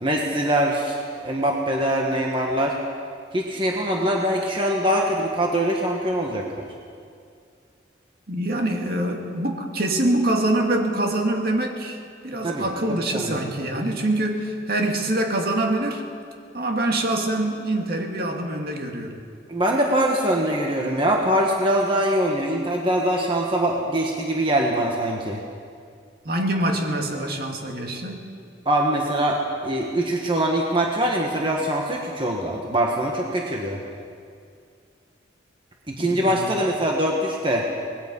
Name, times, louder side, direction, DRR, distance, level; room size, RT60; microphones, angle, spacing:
voice 1, 0.0-2.8 3.3-6.6 12.4-13.4 19.5-25.4 28.6-33.8 35.9-37.7, right 1 dB, 25° right, 0 dB, 1.5 m, -23 dB
voice 2, 8.3-16.0 16.5-19.2 26.2-28.2 36.0-36.6, right 1 dB, 55° right, 2 dB, 2.4 m, -25 dB
24.5 x 20.0 x 5.5 m, 2.3 s
head